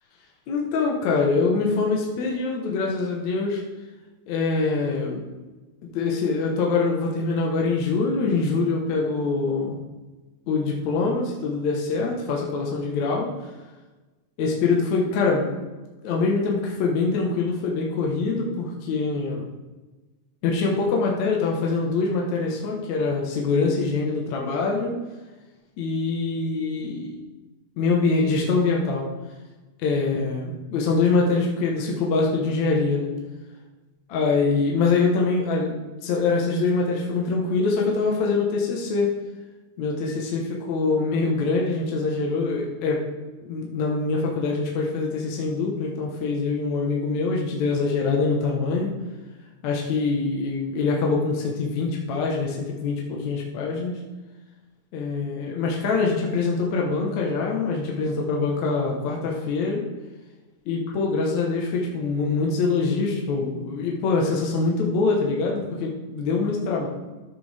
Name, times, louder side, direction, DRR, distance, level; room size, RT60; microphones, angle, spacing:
voice 1, 0.5-3.6 4.3-5.3 5.9-9.8 10.5-13.3 14.4-15.5 16.0-19.5 20.4-25.0 25.8-27.2 27.8-29.1 29.8-33.1 34.1-39.1 39.8-43.0 43.4-48.9 49.6-54.0 54.9-59.8 60.7-66.9, left 4 dB, 65° left, -1 dB, 2.2 m, -24 dB
13.0 x 6.9 x 3.4 m, 1.2 s
omnidirectional pair, 3.9 m